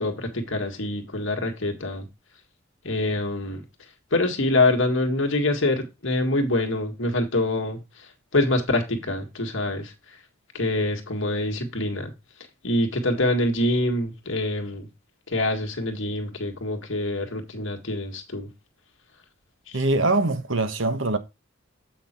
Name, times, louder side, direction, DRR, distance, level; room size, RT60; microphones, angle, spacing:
voice 1, 0.0-2.1 2.8-3.6 4.1-7.8 8.3-9.9 10.5-12.1 12.6-14.9 15.3-18.5 19.7-19.8, left 2 dB, 65° left, 1.7 m, -25 dB
voice 2, 19.7-21.2, right 2 dB, 65° right, 1.2 m, -23 dB
7.8 x 5.9 x 4.3 m
head